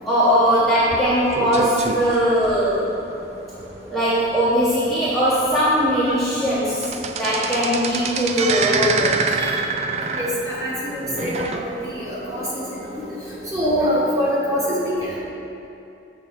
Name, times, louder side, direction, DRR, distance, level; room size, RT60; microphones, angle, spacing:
voice 1, 0.0-2.8 3.9-6.9 7.2-9.2, equal, ahead, -11 dB, 1.0 m, -20 dB
sound 1, 0.9-3.1 3.6-3.7 4.1-4.2 4.7-4.8 5.5-5.6 5.9-6.2 6.5-12.0 12.4-12.5 13.3-13.4, right 4 dB, 35° right, 0.3 m, -26 dB
voice 2, 13.5-14.6, equal, 20° right, -7 dB, 1.4 m, -21 dB
7.3 x 3.8 x 6.3 m, 2.8 s
head